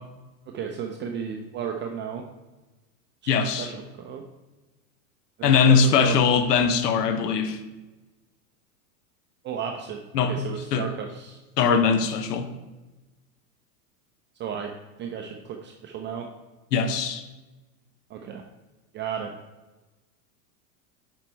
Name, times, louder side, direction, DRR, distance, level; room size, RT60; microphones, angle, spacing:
voice 1, 0.5-2.3 3.2-4.2 5.4-6.2 9.4-10.0 10.3-11.4 14.4-14.7 15.0-16.3 18.1-18.4 18.9-19.3, right 7 dB, 25° right, 3 dB, 0.4 m, -34 dB
voice 2, 3.3-3.7 5.4-7.6 10.1-10.8 11.6-12.5 16.7-17.2, left 6 dB, 80° left, 8 dB, 0.9 m, -21 dB
6.6 x 4.5 x 4.5 m, 1.2 s
hypercardioid pair, 105°, 47 cm